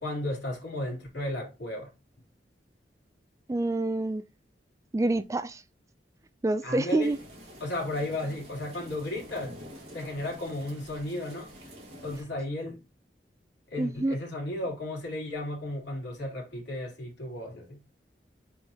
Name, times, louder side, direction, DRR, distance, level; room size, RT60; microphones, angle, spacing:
voice 1, 0.0-1.9 6.6-7.1 7.6-9.6 9.9-11.5 12.0-12.8 13.7-17.8, left 1 dB, 75° left, 3.4 m, -34 dB
voice 2, 3.5-4.2 4.9-5.6 6.4-7.2 13.7-14.2, right 2 dB, 20° right, 0.3 m, -27 dB
sound 1, 7.0-12.2, equal, 40° right, 3.4 m, -47 dB
7.9 x 4.5 x 2.8 m
head